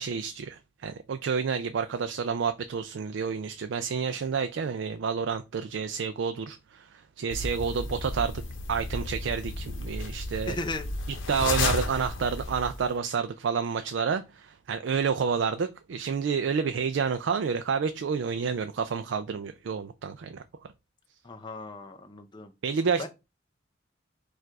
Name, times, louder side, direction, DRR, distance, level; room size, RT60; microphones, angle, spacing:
voice 1, 0.0-8.4 8.7-10.6 11.3-20.4 22.6-23.1, right 6 dB, 70° right, 0.4 m, -29 dB
sound 1, 7.3-12.9, left 2 dB, 75° left, 0.9 m, -33 dB
voice 2, 10.5-10.8 21.2-22.5 23.0-23.1, left 2 dB, 25° left, 0.5 m, -36 dB
4.6 x 2.5 x 4.5 m
head